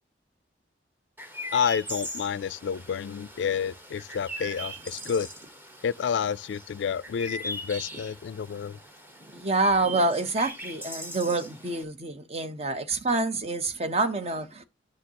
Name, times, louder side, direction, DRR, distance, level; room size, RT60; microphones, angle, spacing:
Chirp tweet, 1.2-11.8, equal, 10° right, 1.1 m, -40 dB
voice 1, 1.5-5.3 5.8-8.8, left 7 dB, 80° left, 0.3 m, -29 dB
voice 2, 9.3-14.6, right 2 dB, 35° right, 0.8 m, -27 dB
9.7 x 6.4 x 2.8 m
head